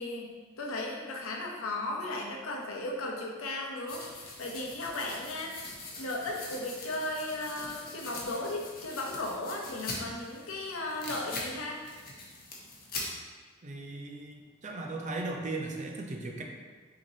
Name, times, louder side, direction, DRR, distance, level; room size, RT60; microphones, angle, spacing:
voice 1, 0.0-5.6 6.0-11.8, left 2 dB, 90° left, 0 dB, 0.7 m, -36 dB
sound 1, 3.9-13.0, left 2 dB, 45° left, 0.8 m, -43 dB
voice 2, 13.6-16.4, right 2 dB, 35° right, 1 dB, 0.5 m, -37 dB
5.9 x 2.9 x 2.7 m, 1.4 s
head